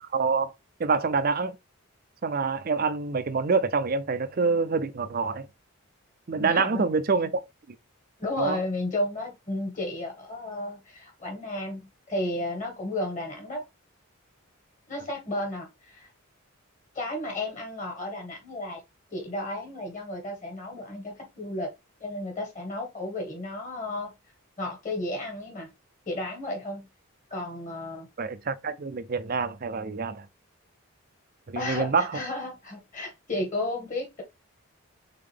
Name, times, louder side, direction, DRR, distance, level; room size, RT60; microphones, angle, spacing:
voice 1, 0.0-0.5 0.8-1.6 2.2-5.5 6.3-7.4 7.7-7.8 8.4-8.6 28.2-30.3 31.5-32.2, right 4 dB, 40° right, 0.4 m, -26 dB
voice 2, 6.4-6.8 8.2-13.6 14.9-16.1 16.9-18.8 19.1-21.7 22.0-24.1 24.6-25.7 26.0-26.9 27.3-28.1 31.5-34.2, left 1 dB, 35° left, 1.6 m, -33 dB
3.7 x 3.7 x 3.4 m
head